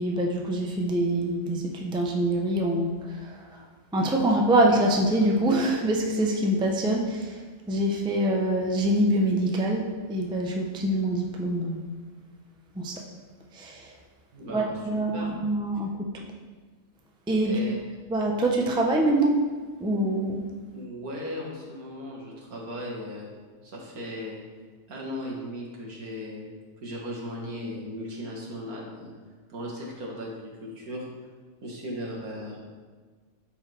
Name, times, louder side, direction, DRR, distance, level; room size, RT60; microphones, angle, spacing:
voice 1, 0.0-3.6 3.9-7.4 7.7-11.8 12.7-13.0 13.5-13.9 14.5-16.2 17.3-17.6 18.1-19.4 19.8-20.4, right 1 dB, 5° right, 0 dB, 0.5 m, -25 dB
voice 2, 14.3-14.7 15.1-15.3 17.4-17.8 20.7-23.3 23.6-24.4 24.9-26.5 26.8-29.1 29.5-31.1 31.6-32.6, equal, 80° right, -3 dB, 2.2 m, -37 dB
13.0 x 4.7 x 3.4 m, 1.4 s
omnidirectional pair, 1.5 m